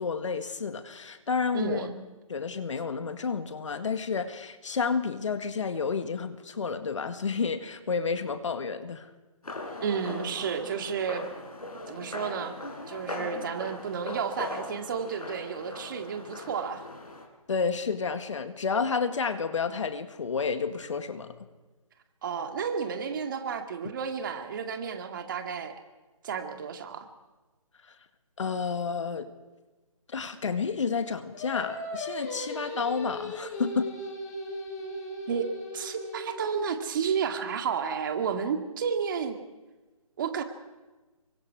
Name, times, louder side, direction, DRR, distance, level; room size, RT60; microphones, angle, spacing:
voice 1, 0.0-1.9 2.3-9.1 17.5-21.5 28.4-29.3 30.1-33.9, left 5 dB, 55° left, 9 dB, 1.9 m, -30 dB
voice 2, 1.5-2.0 9.8-11.3 11.9-12.5 12.9-16.9 22.2-25.7 26.2-27.1 35.3-35.5 35.7-39.4 40.2-40.4, right 6 dB, 35° right, 5 dB, 2.2 m, -31 dB
sound 1, 9.4-17.3, left 2 dB, 85° left, 5.2 m, -40 dB
Singing, 31.3-36.7, left 1 dB, 30° left, 5.2 m, -37 dB
27.5 x 24.0 x 4.8 m, 1.2 s
figure-of-eight pair, 155°, 19 cm